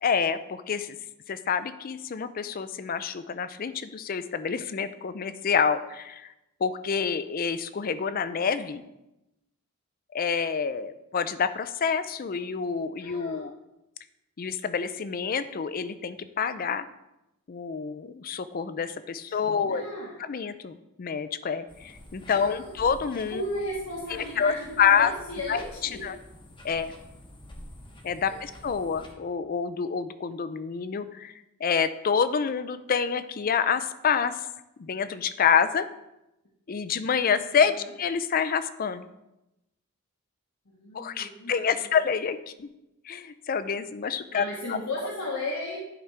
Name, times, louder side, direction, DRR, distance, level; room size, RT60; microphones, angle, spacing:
voice 1, 0.0-1.0 1.3-6.3 6.6-8.8 10.1-13.5 14.4-16.9 17.5-19.8 20.3-23.4 24.1-25.1 25.5-25.6 26.0-26.2 26.6-26.9 28.0-31.3 31.6-34.4 34.8-35.9 36.7-39.1 40.9-42.7 43.0-44.8, left 6 dB, 40° left, 13 dB, 0.4 m, -27 dB
voice 2, 13.0-13.5 19.2-20.1 22.3-22.7 23.3-26.1 28.1-28.4 37.8-37.9 40.7-41.9 44.3-45.8, left 1 dB, 80° left, -4 dB, 1.2 m, -35 dB
sound 1, 21.7-29.1, left 1 dB, 20° left, 0.9 m, -48 dB
11.0 x 5.1 x 3.4 m, 0.92 s
head